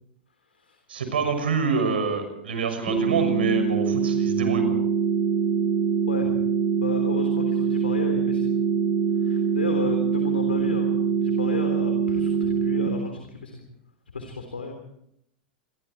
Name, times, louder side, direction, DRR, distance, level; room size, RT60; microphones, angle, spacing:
voice 1, 0.9-4.8, right 4 dB, 75° right, 7 dB, 6.4 m, -26 dB
sound 1, 2.9-12.9, right 6 dB, 15° right, 7.5 m, -24 dB
voice 2, 6.8-8.6 9.2-13.6 14.1-14.7, left 4 dB, 85° left, 5 dB, 3.5 m, -33 dB
28.5 x 23.5 x 4.5 m, 0.75 s
hypercardioid pair, 90°, 6 cm